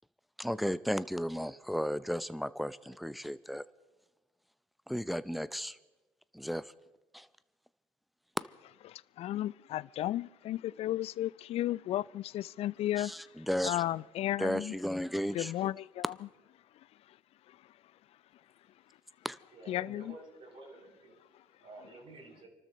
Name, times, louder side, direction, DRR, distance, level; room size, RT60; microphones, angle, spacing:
voice 1, 0.4-3.6 4.9-5.8 6.3-6.7 7.1-7.3 13.0-13.8 14.4-15.5 19.2-19.4, equal, ahead, 0.6 m, -34 dB
voice 2, 8.9-13.1 13.6-14.7 15.3-16.1 19.7-20.1, left 13 dB, 55° left, 0.4 m, -34 dB
voice 3, 19.5-22.5, right 2 dB, 50° right, 6.9 m, -51 dB
29.0 x 13.0 x 3.1 m
hypercardioid pair, 65°, 12 cm